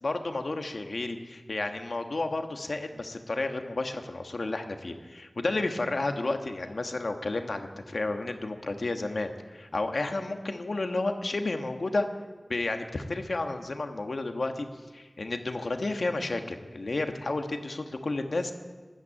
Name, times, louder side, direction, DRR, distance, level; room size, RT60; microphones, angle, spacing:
voice 1, 0.0-12.1 12.5-14.7 14.9-18.5, left 2 dB, 80° left, 5 dB, 1.3 m, -31 dB
13.5 x 12.0 x 8.7 m, 1.3 s
wide cardioid pair, 45°, 0 cm